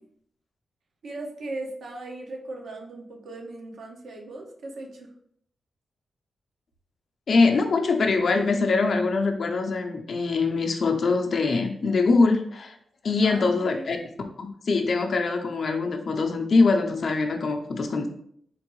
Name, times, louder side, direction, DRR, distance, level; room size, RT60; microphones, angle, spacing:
voice 1, 1.0-5.1 13.2-13.9, right 2 dB, 75° right, 0 dB, 0.9 m, -38 dB
voice 2, 7.3-12.7 13.0-14.0 14.4-18.1, left 3 dB, 60° left, 4 dB, 0.5 m, -23 dB
4.5 x 2.6 x 3.0 m, 0.66 s
wide cardioid pair, 110°, 0 cm